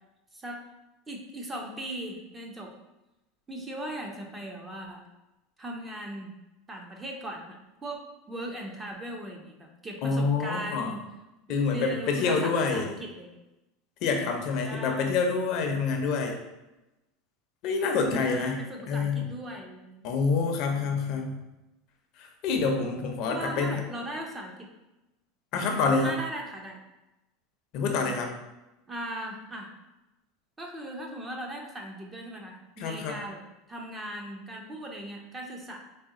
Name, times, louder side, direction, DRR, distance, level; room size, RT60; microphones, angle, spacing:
voice 1, 0.3-0.6 1.1-2.7 3.5-5.0 5.6-6.3 6.7-7.6 7.8-11.0 11.5-13.3 14.6-15.2 18.2-20.0 20.7-21.3 23.3-24.7 26.0-26.8 28.9-29.7 30.6-33.4 33.7-35.8, right 1 dB, 15° right, 1 dB, 0.6 m, -38 dB
voice 2, 10.0-10.9 11.5-12.9 14.0-16.4 17.6-18.6 18.9-19.2 20.0-21.4 22.2-23.8 25.5-26.2 27.7-28.3 32.8-33.2, left 4 dB, 55° left, 3 dB, 0.6 m, -27 dB
4.1 x 2.2 x 3.7 m, 0.97 s
supercardioid pair, 135°, 0 cm